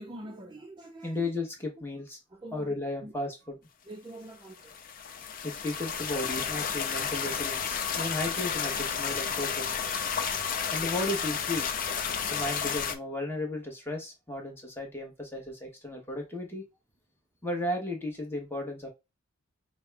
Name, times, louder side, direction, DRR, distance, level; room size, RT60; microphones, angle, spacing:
voice 1, 0.0-1.3 2.3-3.1 3.8-4.8 5.2-5.5, right 1 dB, 20° right, 0.4 m, -45 dB
voice 2, 1.0-2.2 2.5-3.6 5.4-9.7 10.7-11.7 12.3-16.6 17.4-18.9, left 1 dB, 10° left, 1.0 m, -34 dB
sound 1, 4.6-13.0, left 7 dB, 40° left, 0.5 m, -32 dB
5.2 x 2.1 x 3.4 m
head